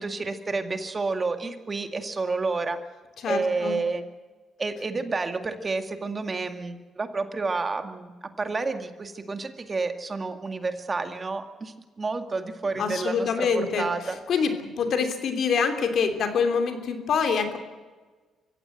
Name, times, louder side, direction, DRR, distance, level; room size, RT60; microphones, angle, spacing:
voice 1, 0.0-2.8 3.3-4.0 4.6-14.2, right 3 dB, 30° right, 7 dB, 2.0 m, -30 dB
voice 2, 3.2-3.8 12.8-13.8 14.3-17.6, left 5 dB, 65° left, 7 dB, 3.0 m, -25 dB
23.5 x 15.5 x 7.9 m, 1.3 s
cardioid pair, 90°, 0 cm